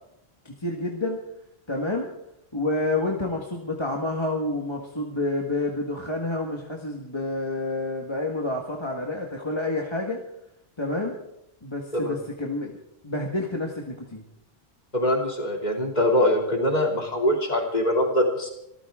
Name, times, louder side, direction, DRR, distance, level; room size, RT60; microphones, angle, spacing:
voice 1, 0.4-1.2 1.7-2.1 2.5-10.2 10.8-11.2 11.6-12.8 13.0-14.2, left 2 dB, 25° left, 0 dB, 1.7 m, -29 dB
voice 2, 14.9-18.5, left 1 dB, 40° left, 1 dB, 3.1 m, -23 dB
25.0 x 14.0 x 3.7 m, 0.80 s
omnidirectional pair, 1.1 m